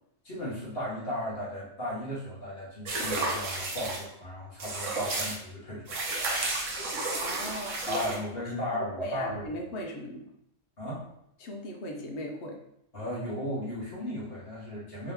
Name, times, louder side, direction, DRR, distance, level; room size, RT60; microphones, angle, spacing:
voice 1, 0.2-6.0 7.8-9.5 10.8-11.1 12.9-15.1, left 1 dB, 40° left, -7 dB, 1.6 m, -35 dB
sound 1, 2.8-4.0 4.6-5.4 5.9-8.2, right 2 dB, 60° right, 1.1 m, -32 dB
voice 2, 7.2-8.1 8.7-10.3 11.4-12.6, equal, 60° left, 2 dB, 0.8 m, -38 dB
3.9 x 2.8 x 3.4 m, 0.76 s
omnidirectional pair, 1.5 m